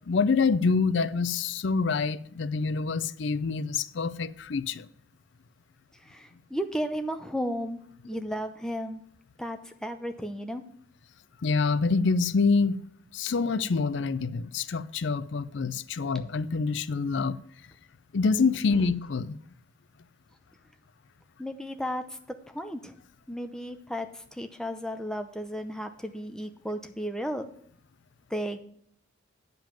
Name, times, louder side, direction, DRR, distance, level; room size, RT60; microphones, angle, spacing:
voice 1, 0.1-4.9 11.4-12.8 13.1-17.4 18.1-19.4, left 4 dB, 65° left, 0.5 m, -26 dB
voice 2, 6.1-7.8 8.0-9.0 9.4-10.6 21.4-22.0 22.5-22.9 23.3-27.5 28.3-28.6, equal, 5° left, 0.7 m, -34 dB
9.0 x 5.3 x 7.5 m
head